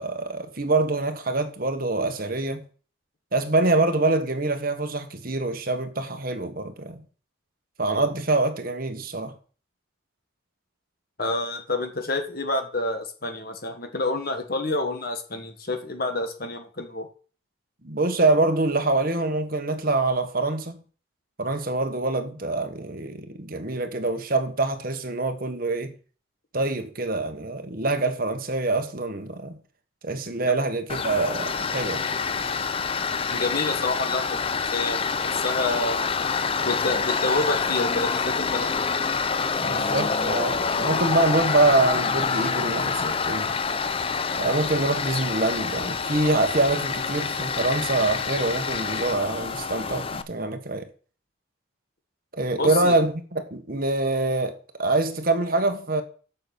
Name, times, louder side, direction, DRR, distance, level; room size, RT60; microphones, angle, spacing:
voice 1, 0.0-2.6 3.3-7.0 7.8-9.3 17.8-20.8 21.4-25.9 26.5-29.6 30.0-32.0 39.6-43.5 44.4-50.9 52.3-56.0, right 2 dB, 45° right, 1.3 m, -25 dB
voice 2, 11.2-17.1 33.3-36.1 36.6-38.9 52.6-52.9, left 2 dB, 45° left, 1.6 m, -28 dB
Tools, 30.9-50.2, left 5 dB, 25° left, 0.5 m, -27 dB
7.0 x 6.7 x 6.9 m
head